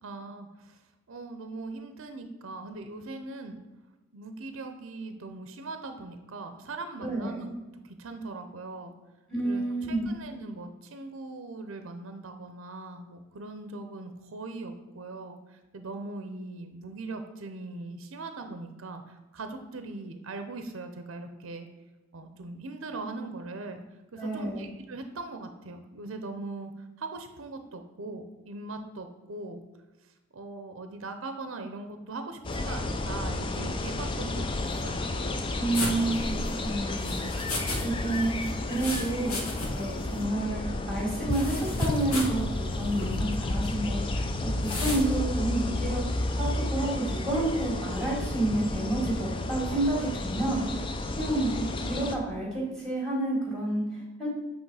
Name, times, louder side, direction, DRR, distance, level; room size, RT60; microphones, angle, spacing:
voice 1, 0.0-0.8 1.1-3.6 4.1-7.6 7.8-8.9 9.4-9.6 9.9-21.7 22.1-23.8 24.1-29.6 30.3-35.1, right 3 dB, 65° right, 7 dB, 0.6 m, -40 dB
voice 2, 7.0-7.4 9.3-10.2 24.2-24.6 35.6-37.5 37.8-38.4 38.7-46.0 46.4-50.8 51.2-54.3, right 2 dB, 5° left, -4 dB, 2.0 m, -30 dB
sound 1, 32.4-52.2, left 2 dB, 25° left, 0.3 m, -31 dB
sound 2, 35.7-37.8 38.1-39.9 40.2-40.3 41.3-42.4 42.9-43.2 44.6-45.0, left 2 dB, 85° left, 1.5 m, -34 dB
7.9 x 3.2 x 4.7 m, 1.1 s
head